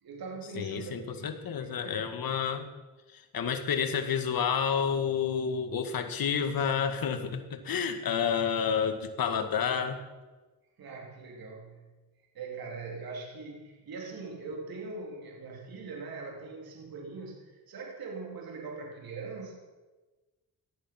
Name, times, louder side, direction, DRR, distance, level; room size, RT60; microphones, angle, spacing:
voice 1, 0.0-1.4 1.8-2.1 10.8-11.9 12.3-19.6, right 4 dB, 65° right, 0 dB, 3.7 m, -41 dB
voice 2, 0.6-2.7 3.1-10.0, left 7 dB, 65° left, 7 dB, 2.1 m, -30 dB
18.0 x 12.5 x 6.0 m, 1.2 s
cardioid pair, 85°, 38 cm